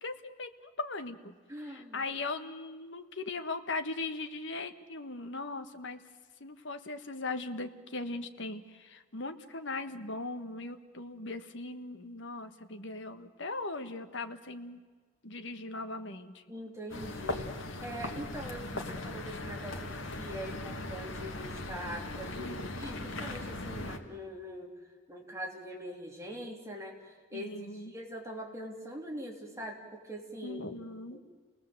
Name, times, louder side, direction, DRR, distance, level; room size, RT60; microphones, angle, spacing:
voice 1, 0.0-1.3 1.6-6.0 6.4-14.8 15.2-16.4 22.4-22.9 27.3-27.9 30.4-31.2, left 3 dB, 65° left, 8 dB, 1.5 m, -39 dB
voice 2, 1.5-2.0 16.5-17.5 17.8-24.7 25.1-30.7 31.1-31.2, equal, 15° right, 0 dB, 3.3 m, -43 dB
sound 1, 16.9-24.0, left 2 dB, 85° left, 2.0 m, -39 dB
29.5 x 19.5 x 7.9 m, 1.5 s
head